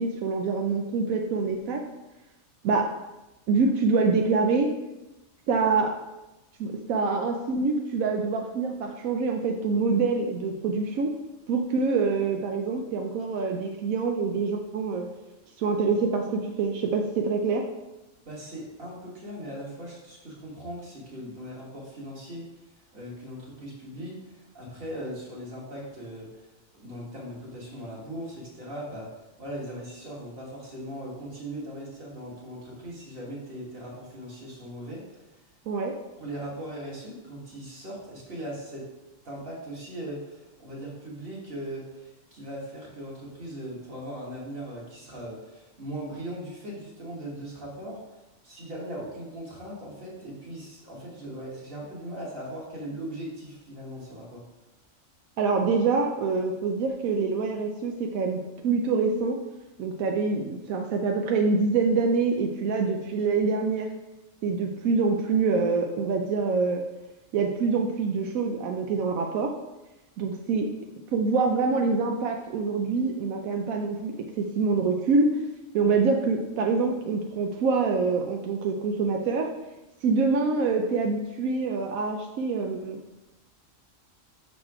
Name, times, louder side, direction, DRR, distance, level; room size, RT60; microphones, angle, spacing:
voice 1, 0.0-1.8 2.6-2.9 3.5-4.7 5.5-6.0 6.6-11.1 11.5-15.1 15.6-17.6 35.7-35.9 55.4-59.4 59.8-63.9 64.4-66.8 67.3-69.5 70.2-70.7 71.1-75.4 75.7-79.5 80.0-83.0, right 4 dB, 85° right, 2 dB, 1.0 m, -25 dB
voice 2, 18.3-29.1 29.4-35.4 36.2-38.8 39.2-54.4, right 1 dB, 45° right, -4 dB, 1.8 m, -39 dB
5.9 x 4.1 x 4.8 m, 1.0 s
omnidirectional pair, 1.4 m